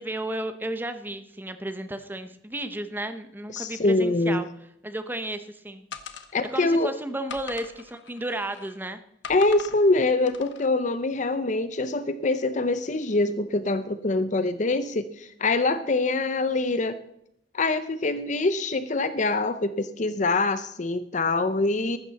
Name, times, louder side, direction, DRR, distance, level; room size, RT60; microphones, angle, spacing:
voice 1, 0.0-4.5 4.8-5.9 6.5-9.0, right 1 dB, 10° right, 9 dB, 0.9 m, -33 dB
voice 2, 3.5-4.4 6.3-6.9 9.3-17.0 17.5-22.0, left 2 dB, 40° left, 12 dB, 0.6 m, -24 dB
sound 1, 5.9-6.7 7.3-8.8 9.2-9.8 10.3-10.7, left 6 dB, 80° left, 1.2 m, -41 dB
14.5 x 12.5 x 4.2 m, 0.75 s
head